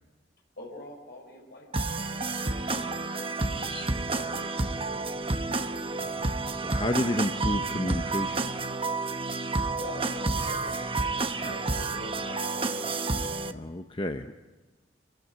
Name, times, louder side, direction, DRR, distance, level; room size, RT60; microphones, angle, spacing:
voice 1, 0.6-3.4 3.9-6.1 9.8-13.1, left 1 dB, 60° left, 0 dB, 4.6 m, -46 dB
sound 1, 1.7-13.5, right 3 dB, 30° right, 0.9 m, -30 dB
voice 2, 3.5-3.9 6.6-8.5 11.4-11.5 13.5-14.3, left 1 dB, 25° left, 7 dB, 0.8 m, -31 dB
26.5 x 15.5 x 9.3 m, 1.2 s
head